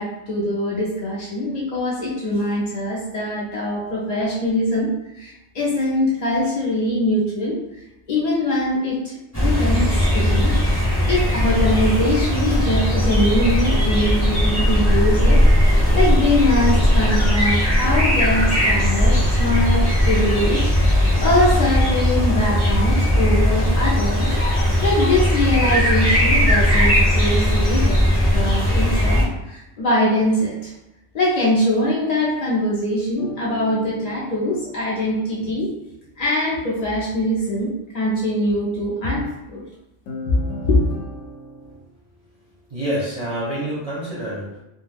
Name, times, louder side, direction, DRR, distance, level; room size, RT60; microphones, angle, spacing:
voice 1, 0.0-4.9 5.1-7.6 8.1-10.5 11.1-24.3 24.8-28.0 28.3-30.7 31.1-35.7 36.2-39.6 40.6-40.8, left 1 dB, 55° left, -6 dB, 0.4 m, -22 dB
sound 1, 9.3-29.2, equal, 15° left, 0.7 m, -18 dB
sound 2, 33.2-35.8 40.1-41.8, equal, 80° left, 0.9 m, -37 dB
voice 2, 42.2-44.6, right 1 dB, 40° right, -8 dB, 0.5 m, -28 dB
2.2 x 2.2 x 3.2 m, 0.91 s
omnidirectional pair, 1.3 m